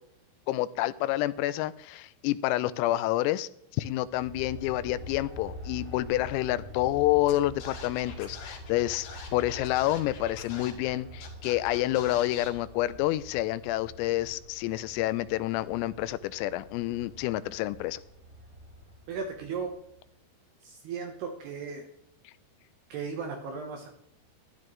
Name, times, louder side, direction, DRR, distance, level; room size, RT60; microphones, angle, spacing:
voice 1, 0.5-3.5 3.8-18.0, left 15 dB, 85° left, 15 dB, 3.3 m, -28 dB
Aircraft, 3.9-19.9, left 1 dB, 10° right, 5.3 m, -46 dB
Scratching (performance technique), 7.3-7.4 7.6-10.9 11.2-12.5, left 5 dB, 60° left, 4.6 m, -44 dB
voice 2, 19.1-19.7 20.6-21.9 22.9-23.9, right 5 dB, 70° right, 3 dB, 2.6 m, -36 dB
12.5 x 12.0 x 3.2 m, 0.74 s
omnidirectional pair, 6.0 m